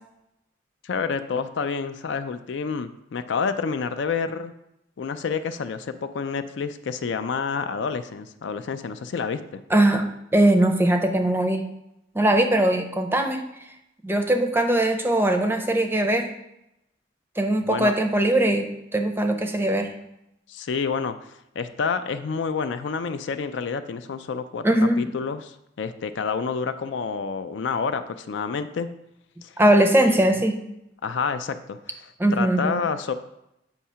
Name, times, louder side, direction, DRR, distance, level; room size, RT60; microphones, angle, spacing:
voice 1, 0.8-4.5 5.0-9.6 17.6-17.9 20.5-21.2 21.6-24.6 25.0-28.9 29.4-29.5 30.0-30.3 31.0-31.8 32.3-33.1, left 5 dB, 65° left, 10 dB, 0.4 m, -28 dB
voice 2, 9.7-10.0 10.3-11.7 12.1-13.4 14.0-16.3 17.4-18.7 18.9-19.9 24.6-25.1 29.6-30.5 32.2-32.8, right 1 dB, 10° right, 5 dB, 0.5 m, -20 dB
8.1 x 2.8 x 5.6 m, 0.85 s
head